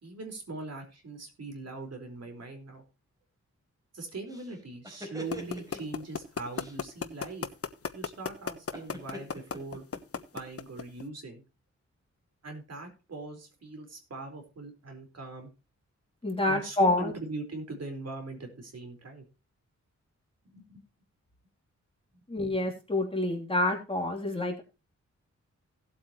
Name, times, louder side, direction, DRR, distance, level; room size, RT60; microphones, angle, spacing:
voice 1, 0.0-2.8 3.9-7.5 7.9-9.8 10.3-11.4 12.4-15.5 16.5-19.2 20.5-20.6, right 3 dB, 60° right, 4 dB, 4.3 m, -41 dB
sound 1, 4.3-6.0 6.5-6.8 8.7-10.4, equal, 10° right, 4.6 m, -44 dB
sound 2, 5.3-11.0, left 6 dB, 50° left, 1.1 m, -32 dB
voice 2, 16.2-17.1 22.3-24.6, left 2 dB, 20° left, 1 dB, 3.0 m, -27 dB
17.0 x 8.3 x 2.9 m, 0.30 s
wide cardioid pair, 125°, 29 cm